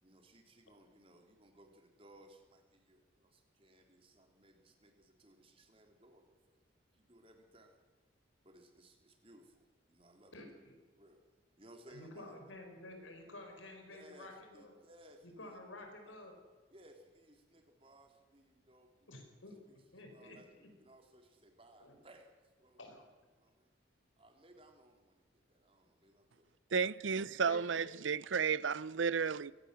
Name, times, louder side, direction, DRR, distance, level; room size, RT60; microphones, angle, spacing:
voice 1, 0.0-6.6 6.9-7.8 8.4-10.3 11.0-11.2 11.6-12.4 13.9-15.6 16.1-16.2 16.7-19.3 19.7-20.5 20.8-22.8 23.3-23.7 24.2-26.5, right 1 dB, 30° right, 3.1 m, -62 dB
voice 2, 10.3-10.7 11.9-14.7 15.2-16.3 19.1-19.6 19.9-20.7 21.8-21.9 22.8-23.0 27.5-27.9, left 1 dB, 85° left, 5.3 m, -51 dB
voice 3, 26.7-29.5, right 6 dB, 75° right, 0.6 m, -33 dB
24.5 x 18.0 x 7.5 m
head